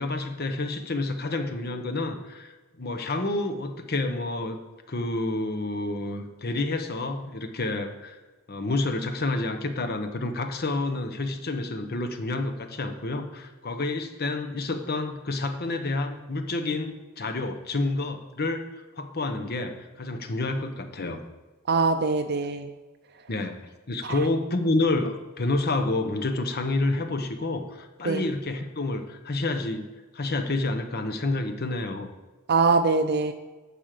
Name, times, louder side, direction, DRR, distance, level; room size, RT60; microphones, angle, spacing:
voice 1, 0.0-4.6 4.9-8.2 8.5-18.7 19.0-21.2 23.3-23.6 23.9-29.8 30.1-32.1, left 2 dB, 50° left, 7 dB, 1.1 m, -29 dB
voice 2, 21.7-22.7 24.0-24.2 28.0-28.2 32.5-33.3, right 4 dB, 55° right, 6 dB, 0.6 m, -23 dB
11.5 x 5.1 x 7.7 m, 1.2 s
head